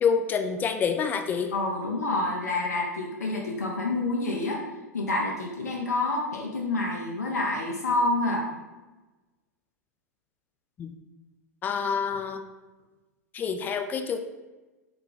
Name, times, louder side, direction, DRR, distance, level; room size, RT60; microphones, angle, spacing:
voice 1, 0.0-1.5 10.8-11.0 11.6-12.4 13.3-14.2, left 6 dB, 20° left, 7 dB, 0.3 m, -27 dB
voice 2, 1.5-4.6 4.9-8.5, left 2 dB, 75° left, -1 dB, 0.5 m, -28 dB
3.2 x 2.5 x 3.7 m, 1.2 s
figure-of-eight pair, 95°, 9 cm